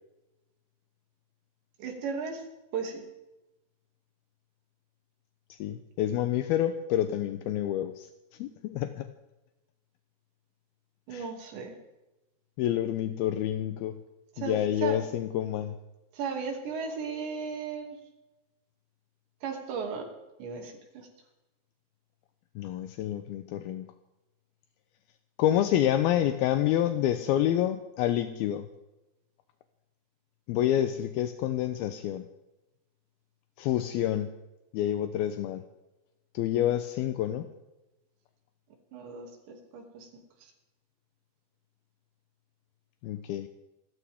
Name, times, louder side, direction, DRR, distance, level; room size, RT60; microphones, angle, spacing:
voice 1, 1.8-2.4 2.7-3.0 11.1-11.8 14.4-15.0 16.1-18.0 19.4-20.1 20.4-21.1 38.9-40.2, right 5 dB, 75° right, 2 dB, 4.8 m, -36 dB
voice 2, 5.6-8.1 8.4-9.1 11.1-11.3 12.6-14.0 14.4-15.7 22.6-23.9 25.4-28.7 30.5-32.3 33.6-34.3 34.7-35.7 36.3-37.5 43.0-43.5, left 11 dB, 80° left, 8 dB, 2.3 m, -28 dB
28.5 x 13.0 x 3.6 m, 0.99 s
omnidirectional pair, 5.2 m